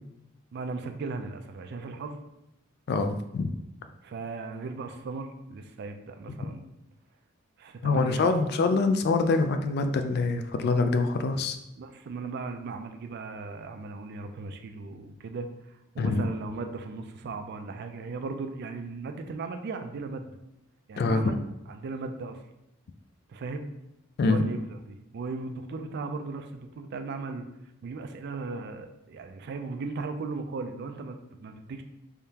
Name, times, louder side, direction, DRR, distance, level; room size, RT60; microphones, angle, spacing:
voice 1, 0.5-2.2 4.0-6.7 7.6-8.2 11.8-20.3 20.9-21.4 21.7-22.4 23.3-23.7 24.2-27.5 27.8-31.8, right 3 dB, 50° right, 6 dB, 0.3 m, -37 dB
voice 2, 2.9-3.5 7.8-11.6 16.0-16.2 21.0-21.2 24.2-24.4, left 3 dB, 50° left, 8 dB, 0.3 m, -25 dB
3.6 x 3.4 x 2.8 m, 0.87 s
head